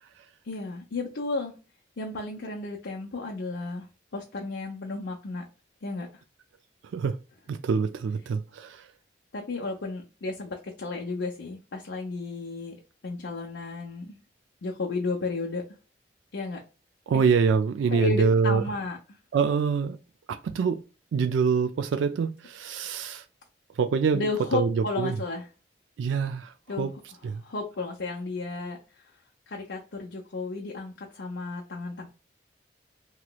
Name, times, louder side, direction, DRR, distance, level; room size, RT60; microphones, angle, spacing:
voice 1, 0.4-1.5 2.0-3.9 4.1-5.4 5.8-6.1 9.3-12.7 13.0-14.2 14.6-15.6 16.3-16.6 17.1-17.2 17.9-19.0 24.1-25.5 26.7-26.9 27.4-28.8 29.5-32.1, left 3 dB, 75° left, 0.7 m, -33 dB
voice 2, 7.5-8.9 17.1-18.6 19.3-20.0 20.3-20.8 21.1-23.2 23.8-25.2 26.0-26.9 27.2-27.4, right 5 dB, 90° right, 0.3 m, -25 dB
3.1 x 2.9 x 2.3 m
head